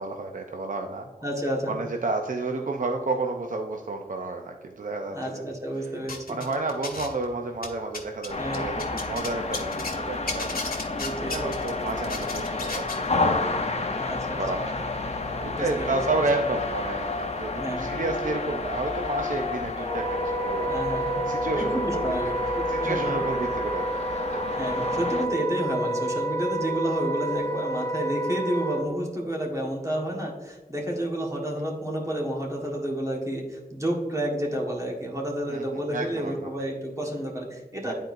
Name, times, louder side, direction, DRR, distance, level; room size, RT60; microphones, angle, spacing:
voice 1, 0.0-1.1 1.7-5.4 5.8-5.9 6.3-10.6 11.3-14.1 14.4-14.7 15.0-20.7 21.3-22.1 22.7-24.4 35.5-35.6 35.9-36.5 37.8-37.9, right 2 dB, 55° right, 3 dB, 0.5 m, -31 dB
voice 2, 1.2-1.8 5.1-6.4 8.4-8.7 11.0-11.4 14.0-14.4 15.5-16.0 17.6-18.0 20.7-21.2 21.5-23.2 24.5-37.9, right 1 dB, 20° right, -2 dB, 1.4 m, -30 dB
sound 1, 6.1-7.3 7.6-10.0 10.3-13.0, left 3 dB, 70° left, 1.1 m, -34 dB
sound 2, 8.3-25.3, left 3 dB, 45° left, 0.7 m, -31 dB
Wind instrument woodwind instrument, 19.8-28.8, right 1 dB, 20° left, 1.5 m, -29 dB
10.0 x 4.4 x 2.6 m, 1.3 s
wide cardioid pair, 70°, 16 cm